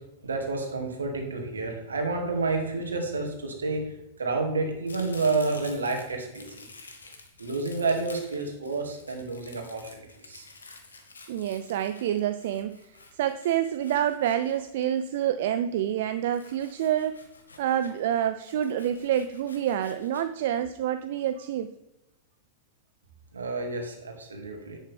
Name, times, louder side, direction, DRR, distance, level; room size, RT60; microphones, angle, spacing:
voice 1, 0.2-6.6 7.4-10.5 23.3-24.8, right 3 dB, 85° right, 2 dB, 2.4 m, -30 dB
Domestic sounds home sounds, 4.9-15.2 16.3-18.0 18.4-20.2, left 3 dB, 85° left, 1.7 m, -50 dB
voice 2, 11.3-12.9 13.1-17.2 17.6-21.7, right 10 dB, 60° right, 10 dB, 0.5 m, -27 dB
10.5 x 9.1 x 3.5 m, 0.97 s
hypercardioid pair, 100°, 0 cm